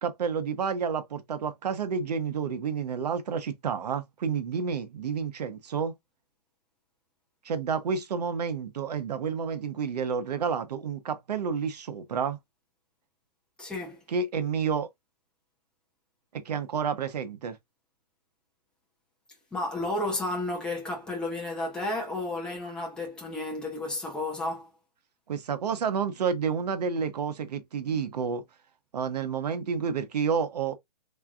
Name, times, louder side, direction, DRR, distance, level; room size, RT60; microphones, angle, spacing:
voice 1, 0.0-5.9 7.4-12.4 14.1-14.9 16.3-17.6 25.3-28.4 28.9-30.7, right 6 dB, 80° right, 0.9 m, -30 dB
voice 2, 13.6-14.0 19.5-24.7, left 2 dB, 5° left, 1.1 m, -32 dB
3.5 x 3.3 x 2.3 m
hypercardioid pair, 165°, 20 cm